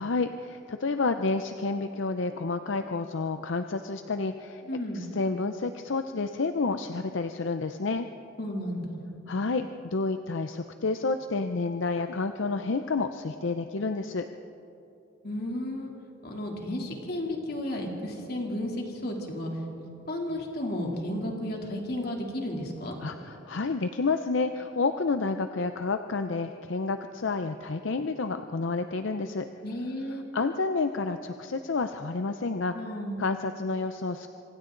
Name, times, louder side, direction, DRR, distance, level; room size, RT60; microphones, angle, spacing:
voice 1, 0.0-4.6 4.9-8.1 9.3-14.3 23.0-29.5 30.3-32.8 33.2-34.3, left 3 dB, 75° left, 8 dB, 0.6 m, -29 dB
voice 2, 4.7-5.1 8.4-9.1 15.2-15.9 16.2-19.5 19.8-22.9 29.6-30.3 32.7-33.4, left 1 dB, 50° left, 0 dB, 3.1 m, -33 dB
26.0 x 25.5 x 3.9 m, 2.9 s
head